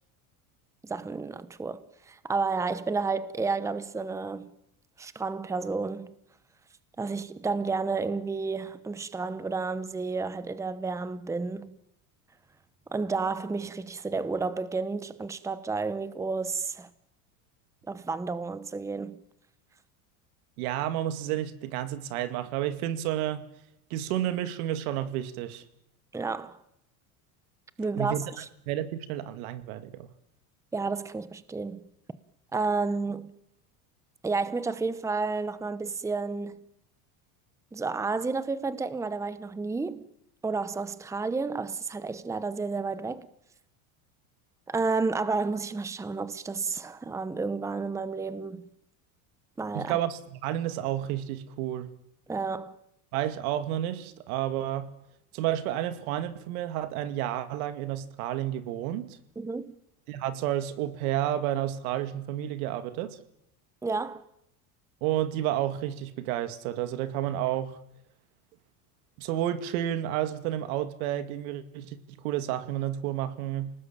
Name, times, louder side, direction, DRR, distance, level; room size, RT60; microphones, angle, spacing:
voice 1, 0.8-4.5 5.0-6.2 7.0-11.7 12.9-16.9 17.9-19.2 26.1-26.6 27.8-28.2 30.7-31.8 32.5-33.3 34.2-36.6 37.7-40.1 40.4-43.3 44.7-48.6 49.6-49.9 52.3-52.7 59.4-59.8 63.8-64.2, right 4 dB, 5° right, 0.9 m, -31 dB
voice 2, 20.6-23.5 23.9-25.6 28.0-28.3 28.7-30.1 49.7-51.9 53.1-54.9 55.3-59.1 60.1-63.2 65.0-67.8 69.2-73.7, right 12 dB, 80° right, 2.4 m, -31 dB
28.5 x 19.5 x 8.9 m
supercardioid pair, 140°, 43 cm